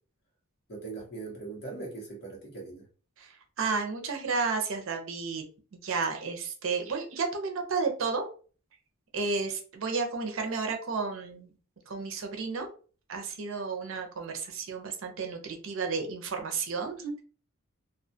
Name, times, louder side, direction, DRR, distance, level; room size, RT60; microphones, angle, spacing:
voice 1, 0.7-2.8, right 3 dB, 50° left, -2 dB, 1.0 m, -40 dB
voice 2, 3.2-5.4 5.7-8.2 9.1-11.5 11.9-12.7 13.1-17.2, right 4 dB, 65° right, 4 dB, 0.5 m, -32 dB
2.3 x 2.2 x 2.7 m, 0.38 s
head